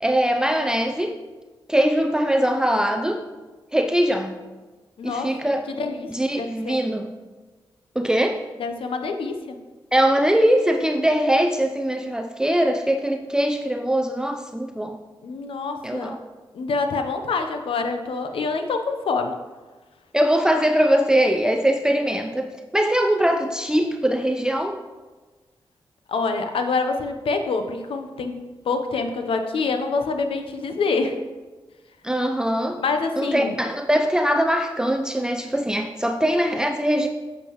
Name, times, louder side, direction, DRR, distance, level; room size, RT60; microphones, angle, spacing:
voice 1, 0.0-1.2 1.7-3.3 3.7-4.4 5.0-5.7 6.1-7.1 8.0-8.4 9.9-15.0 15.8-16.2 20.1-24.8 32.0-32.8 33.2-37.1, right 1 dB, 10° right, 4 dB, 0.5 m, -21 dB
voice 2, 5.0-5.3 5.7-6.8 8.6-9.6 15.2-16.2 16.5-19.4 26.1-31.2 32.8-33.5, left 4 dB, 80° left, 6 dB, 0.8 m, -26 dB
9.1 x 7.5 x 3.1 m, 1.3 s
cardioid pair, 65°, 9 cm